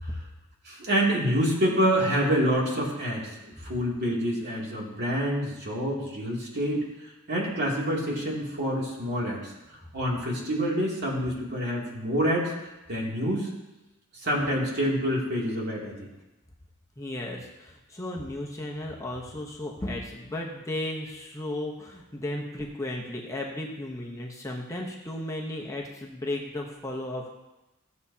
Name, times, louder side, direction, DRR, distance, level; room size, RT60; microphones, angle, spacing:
voice 1, 0.6-6.9 7.3-9.5 9.9-12.5 12.9-13.5 14.1-16.0, equal, 55° right, -4 dB, 2.6 m, -27 dB
voice 2, 17.0-27.3, left 1 dB, 15° left, -1 dB, 0.9 m, -35 dB
15.0 x 7.2 x 2.8 m, 1.0 s
head